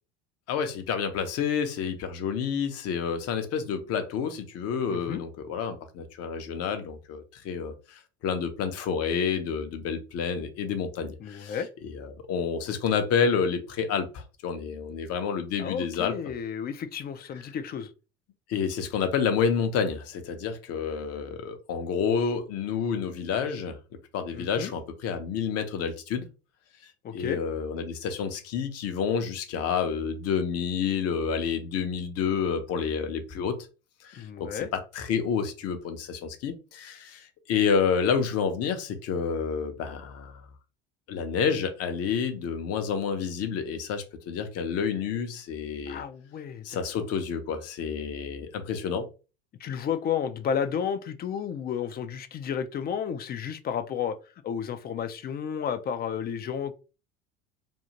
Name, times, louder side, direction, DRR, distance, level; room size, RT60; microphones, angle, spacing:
voice 1, 0.5-11.6 11.8-16.2 18.5-23.8 24.1-26.3 27.1-33.6 34.0-40.4 41.1-46.0 46.6-49.1, left 6 dB, 50° left, 0.7 m, -29 dB
voice 2, 4.9-5.2 11.2-11.7 15.6-17.9 24.3-24.7 27.0-27.4 34.2-34.7 45.9-46.7 49.6-54.2 54.4-56.7, left 8 dB, 30° left, 0.4 m, -32 dB
2.6 x 2.4 x 2.9 m
hypercardioid pair, 80°, 31 cm